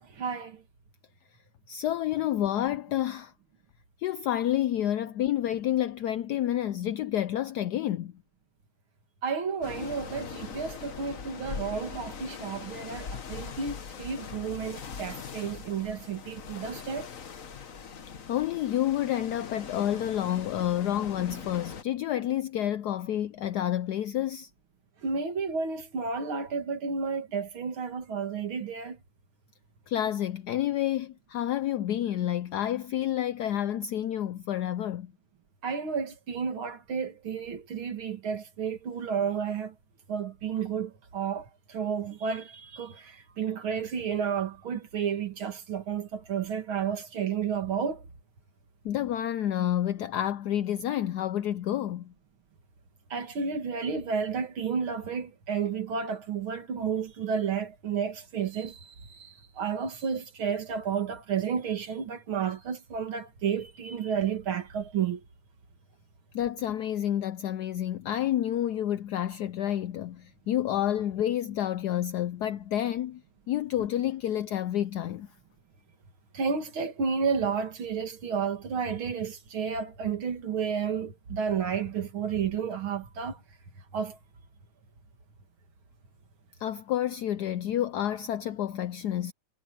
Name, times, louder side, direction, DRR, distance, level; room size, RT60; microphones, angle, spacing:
voice 1, 0.1-0.6 9.2-17.1 25.0-29.0 35.6-39.7 40.1-48.0 53.1-65.2 76.3-83.4 83.9-84.2, right 6 dB, 70° right, 2.8 m, -31 dB
voice 2, 1.7-3.3 4.0-8.1 18.3-24.5 29.9-35.1 48.8-52.1 66.3-73.2 73.5-75.3 86.6-89.3, left 11 dB, 80° left, 0.9 m, -29 dB
sound 1, 9.6-21.8, left 6 dB, 45° left, 1.4 m, -41 dB
omnidirectional pair, 2.4 m